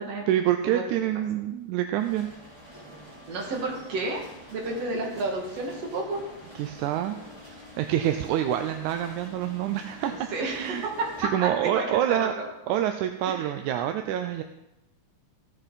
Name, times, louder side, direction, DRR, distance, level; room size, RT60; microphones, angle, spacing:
voice 1, 0.3-2.3 6.6-7.2 7.5-10.9 11.2-12.3 12.7-14.4, right 11 dB, 85° right, 7 dB, 2.0 m, -27 dB
sound 1, 2.0-11.2, left 1 dB, 10° right, 3.4 m, -47 dB
voice 2, 3.3-4.2 4.5-6.2 10.1-12.4 13.3-13.5, right 2 dB, 60° right, -1 dB, 3.1 m, -31 dB
15.5 x 8.0 x 4.1 m, 0.94 s
omnidirectional pair, 3.4 m